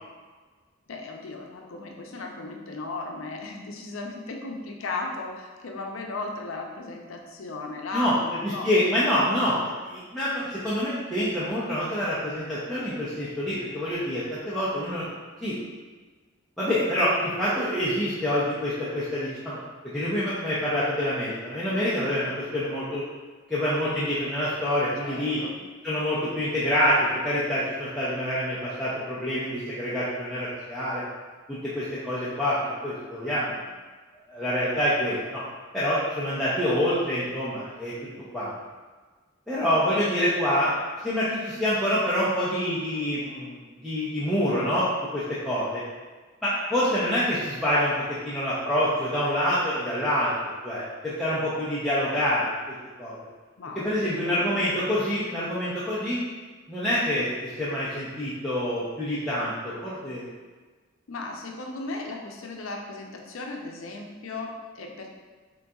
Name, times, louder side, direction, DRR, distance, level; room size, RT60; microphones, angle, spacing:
voice 1, 0.9-8.7 25.0-25.6 53.6-54.4 61.1-65.1, left 3 dB, 80° left, 1 dB, 0.6 m, -36 dB
voice 2, 8.6-15.1 15.4-15.5 16.6-19.6 19.9-23.0 23.5-25.4 25.8-31.0 31.5-33.6 34.3-35.4 35.7-37.9 38.3-38.5 39.5-40.7 41.0-43.6 43.8-44.9 45.1-45.8 46.4-47.9 48.2-52.5 53.0-53.2 53.8-56.2 56.7-60.3, equal, ahead, -12 dB, 0.6 m, -26 dB
3.9 x 3.8 x 2.3 m, 1.4 s
head